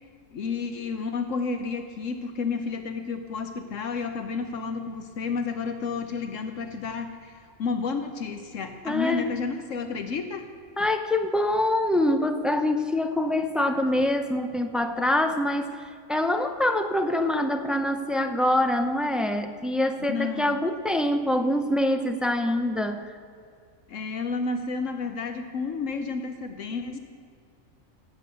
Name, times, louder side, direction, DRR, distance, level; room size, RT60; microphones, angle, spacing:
voice 1, 0.3-10.5 20.1-20.6 23.9-27.0, left 4 dB, 75° left, 7 dB, 1.2 m, -31 dB
voice 2, 8.8-9.3 10.8-15.7 16.1-23.0, left 1 dB, ahead, 6 dB, 0.5 m, -25 dB
16.5 x 8.2 x 6.8 m, 2.3 s
omnidirectional pair, 1.4 m